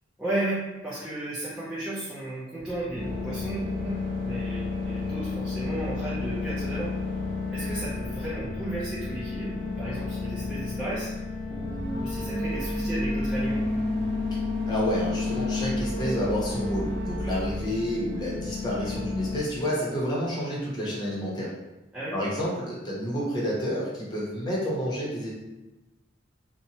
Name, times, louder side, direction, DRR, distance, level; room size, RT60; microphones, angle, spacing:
voice 1, 0.2-6.9 7.5-11.1 11.5-13.6 21.9-22.2, right 1 dB, 5° right, -10 dB, 0.4 m, -34 dB
sound 1, 2.6-16.8, equal, 60° left, 0.7 m, -44 dB
sound 2, 2.9-19.4, left 3 dB, 50° right, 1.0 m, -31 dB
voice 2, 14.7-21.5 22.1-25.3, equal, 25° left, -6 dB, 0.7 m, -29 dB
2.8 x 2.1 x 2.8 m, 1.1 s
head